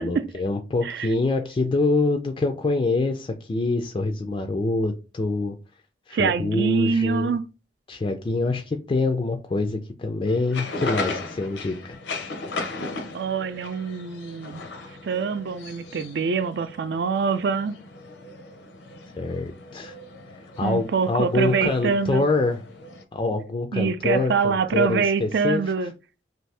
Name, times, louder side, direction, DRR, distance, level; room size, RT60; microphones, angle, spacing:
voice 1, 0.0-5.6 6.1-7.4 7.9-12.0 19.2-19.9 20.3-22.6 23.1-25.9, left 3 dB, 25° left, 0.3 m, -25 dB
voice 2, 6.1-7.4 13.1-14.6 15.0-17.8 20.6-22.2 23.7-25.9, right 5 dB, 65° right, 0.4 m, -25 dB
sound 1, 10.3-23.0, left 3 dB, 80° left, 0.6 m, -37 dB
2.7 x 2.6 x 3.2 m
head